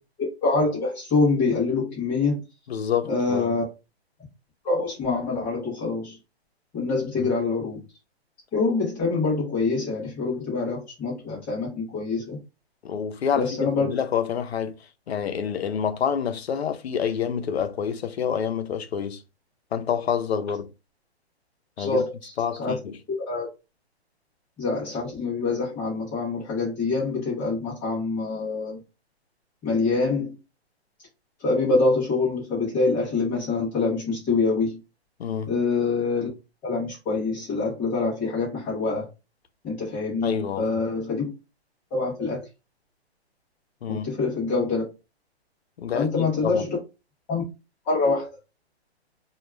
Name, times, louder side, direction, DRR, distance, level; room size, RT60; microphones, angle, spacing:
voice 1, 0.4-2.4 3.1-3.6 4.6-6.2 6.7-7.8 8.5-12.4 13.4-13.9 21.8-22.3 22.6-22.8 23.1-23.5 24.6-28.8 29.6-30.4 31.4-34.8 35.5-36.3 36.6-39.1 39.6-41.3 41.9-42.4 43.9-44.8 45.9-46.8 47.3-47.4 47.9-48.3, left 3 dB, 5° left, 0.6 m, -25 dB
voice 2, 2.7-3.6 7.2-7.3 12.8-14.7 15.1-19.2 19.7-20.7 21.8-22.0 22.4-23.0 35.2-35.5 40.2-40.8 43.8-44.1 45.8-46.7, left 7 dB, 70° left, 0.6 m, -28 dB
2.3 x 2.2 x 3.1 m
hypercardioid pair, 165°, 33 cm